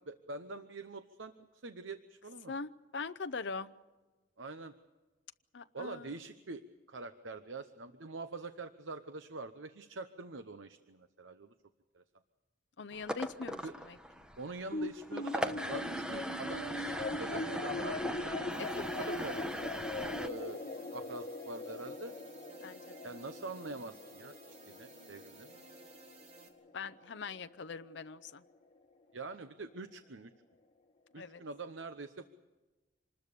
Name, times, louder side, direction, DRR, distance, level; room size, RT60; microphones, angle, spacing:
voice 1, 0.1-1.3 1.6-2.5 4.4-4.7 5.7-11.5 11.9-12.0 13.6-13.7 14.4-18.5 18.8-19.4 20.0-20.6 20.9-22.1 23.0-25.5 29.1-30.3 31.1-32.3, right 3 dB, 75° right, 9 dB, 0.9 m, -44 dB
voice 2, 2.5-3.7 5.5-6.1 12.8-14.0 18.8-19.3 22.6-22.9 26.7-28.4 31.2-31.4, left 4 dB, 60° left, 10 dB, 0.6 m, -42 dB
sound 1, 12.9-20.3, equal, 5° right, 1.0 m, -40 dB
sound 2, 14.7-27.3, left 2 dB, 35° left, 1.9 m, -41 dB
sound 3, 18.5-26.5, right 2 dB, 35° right, 4.2 m, -56 dB
26.5 x 20.5 x 6.9 m, 1.2 s
head